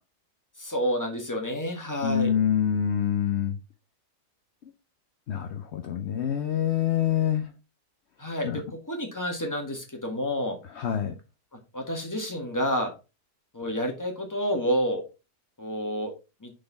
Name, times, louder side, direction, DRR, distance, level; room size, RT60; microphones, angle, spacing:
voice 1, 0.6-2.3 8.2-10.6 11.7-12.9 13.5-15.0 15.6-16.1 16.4-16.5, equal, 10° left, 1.5 m, -29 dB
voice 2, 2.0-3.6 5.3-7.5 8.4-8.6 10.8-11.1, left 9 dB, 60° left, 0.7 m, -26 dB
6.4 x 4.1 x 4.0 m
omnidirectional pair, 1.8 m